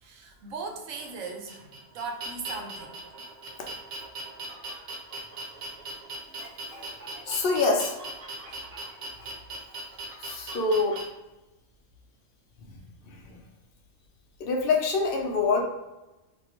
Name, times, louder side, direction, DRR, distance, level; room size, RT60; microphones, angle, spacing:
voice 1, 0.0-2.9 8.5-8.6, right 4 dB, 85° right, 3 dB, 1.0 m, -38 dB
sound 1, 1.0-11.0, right 2 dB, 55° right, 0.9 m, -39 dB
voice 2, 7.3-8.0 10.2-11.0 13.1-13.4 14.4-15.6, left 4 dB, 55° left, 2 dB, 0.7 m, -25 dB
2.7 x 2.6 x 4.2 m, 1.0 s
omnidirectional pair, 1.3 m